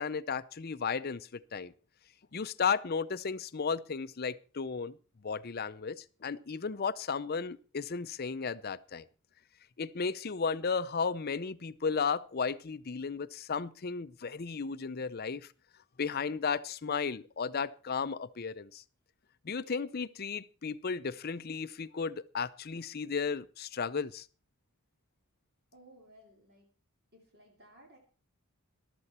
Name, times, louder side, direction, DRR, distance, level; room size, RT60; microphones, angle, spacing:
voice 1, 0.0-1.7 2.3-5.0 5.2-9.1 9.8-15.5 16.0-18.8 19.4-24.3, left 5 dB, 45° left, 16 dB, 0.6 m, -34 dB
voice 2, 25.7-26.7 27.1-28.0, right 1 dB, 50° right, 0 dB, 2.9 m, -58 dB
14.5 x 12.0 x 4.3 m, 0.37 s
head